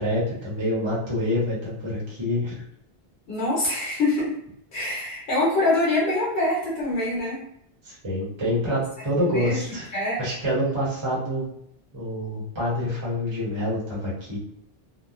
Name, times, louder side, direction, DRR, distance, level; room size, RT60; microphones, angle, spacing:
voice 1, 0.0-2.6 7.8-9.9 10.2-11.5 11.9-14.4, left 1 dB, 30° right, -7 dB, 0.9 m, -26 dB
voice 2, 3.3-4.3 4.7-7.4 9.2-9.6 9.9-10.2, left 2 dB, 90° left, -6 dB, 1.2 m, -24 dB
2.9 x 2.2 x 2.4 m, 0.73 s
omnidirectional pair, 1.1 m